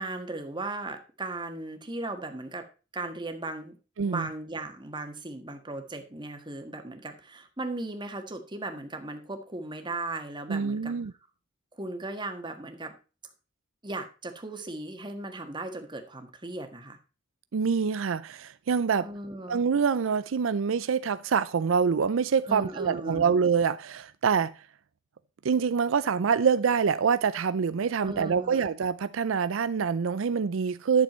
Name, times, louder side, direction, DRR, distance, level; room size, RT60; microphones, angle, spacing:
voice 1, 0.0-2.6 2.9-3.8 4.0-10.9 11.7-12.9 13.8-17.0 19.0-19.6 22.5-23.3 28.0-28.7, right 2 dB, 25° right, 1.6 m, -37 dB
voice 2, 10.5-11.1 17.5-19.1 19.5-24.5 25.4-31.0, right 6 dB, 80° right, 0.5 m, -25 dB
11.0 x 7.0 x 4.3 m
head